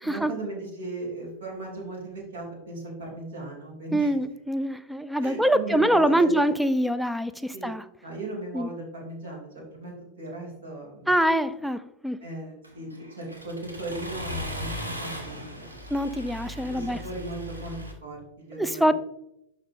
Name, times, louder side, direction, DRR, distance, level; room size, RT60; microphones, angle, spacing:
voice 1, 0.0-4.2 5.2-6.4 7.5-7.7 8.0-11.1 12.2-16.0 16.7-17.7 18.0-18.9, right 2 dB, 65° right, -2 dB, 3.2 m, -37 dB
voice 2, 3.9-7.8 8.5-8.7 11.1-12.2 15.9-17.0 18.6-18.9, right 1 dB, ahead, 14 dB, 0.4 m, -24 dB
Accelerating revving vroom, 12.6-17.9, equal, 80° right, 1.3 m, -37 dB
11.5 x 4.0 x 3.7 m, 0.81 s
figure-of-eight pair, 90°, 0 cm